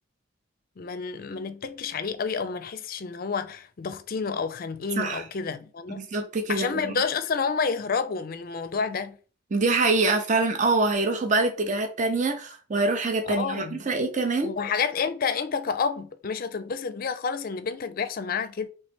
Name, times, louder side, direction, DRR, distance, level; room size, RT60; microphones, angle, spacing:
voice 1, 0.8-6.0 6.5-9.2 13.3-13.8 14.4-18.7, left 5 dB, 45° left, 0.5 m, -29 dB
voice 2, 5.9-7.0 9.5-14.5, right 3 dB, 40° right, 0.7 m, -25 dB
3.3 x 3.2 x 4.4 m
head